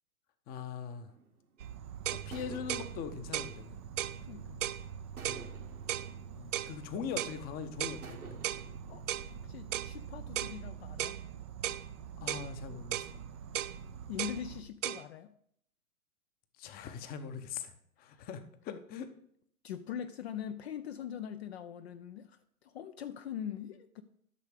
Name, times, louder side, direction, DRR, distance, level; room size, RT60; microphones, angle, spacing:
voice 1, 0.5-1.1 2.1-3.8 5.2-5.5 6.3-8.4 12.2-13.2 16.6-17.7 18.0-19.1, left 7 dB, 20° left, 11 dB, 0.8 m, -41 dB
sound 1, 1.1-1.7 2.3-4.6 5.2-7.4 8.0-10.3, right 5 dB, 85° right, 1.6 m, -54 dB
Insect, 1.6-14.6, right 8 dB, 20° right, 0.4 m, -46 dB
sound 2, 1.6-1.7 2.1-2.3 2.7-2.9 3.3-3.5 4.0-4.2 4.6-4.8 5.2-5.5 5.9-6.1 6.5-6.7 7.2-7.4 7.8-8.0 8.4-8.6 9.1-9.3 9.7-9.9 10.4-10.6 11.0-11.2 11.6-11.8 12.3-12.5 12.9-13.1 13.5-13.8 14.2-14.4 14.8-15.0, right 12 dB, 60° right, 0.7 m, -35 dB
voice 2, 4.2-4.6 8.9-9.0 9.3-11.2 14.1-15.3 18.0-18.3 18.7-18.8 19.6-24.0, left 9 dB, 50° left, 11 dB, 0.6 m, -42 dB
12.5 x 6.4 x 4.9 m, 0.69 s
figure-of-eight pair, 115°, 43 cm